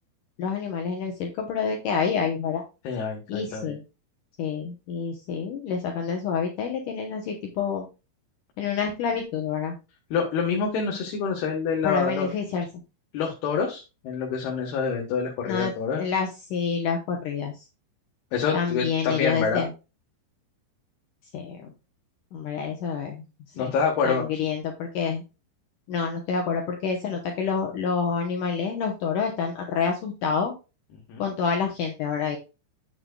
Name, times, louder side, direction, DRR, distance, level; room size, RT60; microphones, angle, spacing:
voice 1, 0.4-2.6 3.3-3.8 4.4-7.9 8.6-9.8 11.8-12.7 15.5-15.7 16.0-17.6 18.5-19.7 21.3-21.7 22.3-23.2 23.6-23.7 24.0-25.2 25.9-30.5 31.2-32.4, left 6 dB, 85° left, 2 dB, 1.8 m, -28 dB
voice 2, 2.8-3.7 10.1-12.3 13.1-16.0 18.3-19.6 23.6-24.3 31.1-31.3, left 5 dB, 70° left, 0 dB, 3.1 m, -27 dB
9.0 x 8.0 x 2.3 m, 0.29 s
omnidirectional pair, 5.2 m